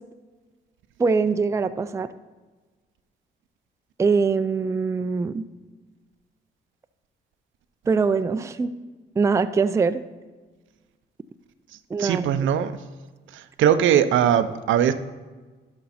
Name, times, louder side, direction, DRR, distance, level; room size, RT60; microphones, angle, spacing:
voice 1, 1.0-2.1 4.0-5.4 7.9-8.7 9.2-10.0 11.9-12.3, right 4 dB, 15° right, 10 dB, 0.4 m, -22 dB
voice 2, 12.0-12.7 13.3-14.9, right 9 dB, 75° right, 11 dB, 0.6 m, -20 dB
12.0 x 5.3 x 4.2 m, 1.3 s
cardioid pair, 90°, 20 cm